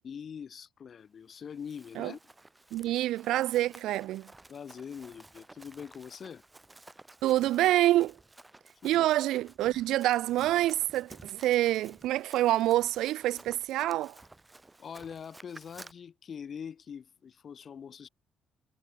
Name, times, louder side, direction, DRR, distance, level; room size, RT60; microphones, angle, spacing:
voice 1, 0.0-2.2 4.5-6.4 8.8-9.1 14.8-18.1, left 7 dB, 50° left, 6.6 m, -43 dB
Run, 1.4-15.9, right 2 dB, 15° right, 6.7 m, -54 dB
voice 2, 2.7-4.3 7.2-8.2 8.8-14.2, right 15 dB, 90° right, 1.2 m, -27 dB
cardioid pair, 90°, 0 cm